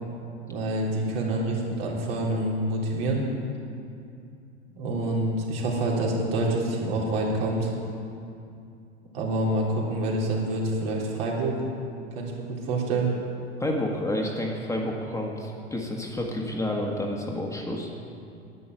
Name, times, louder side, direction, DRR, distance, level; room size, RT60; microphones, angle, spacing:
voice 1, 0.5-3.2 4.7-7.7 9.1-11.6 12.2-13.1, right 2 dB, 60° right, -3 dB, 3.5 m, -27 dB
voice 2, 13.6-17.9, left 1 dB, 10° left, 0 dB, 1.7 m, -29 dB
11.0 x 9.1 x 9.1 m, 2.6 s
figure-of-eight pair, 80°, 33 cm